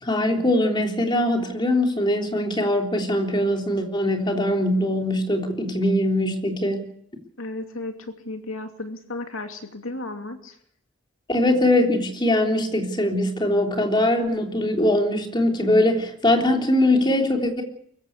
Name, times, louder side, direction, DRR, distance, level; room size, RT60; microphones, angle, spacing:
voice 1, 0.0-6.8 11.3-17.6, left 1 dB, 20° left, 3 dB, 3.6 m, -22 dB
voice 2, 7.4-10.6, left 2 dB, 80° left, 5 dB, 2.7 m, -34 dB
24.0 x 15.0 x 8.2 m, 0.68 s
head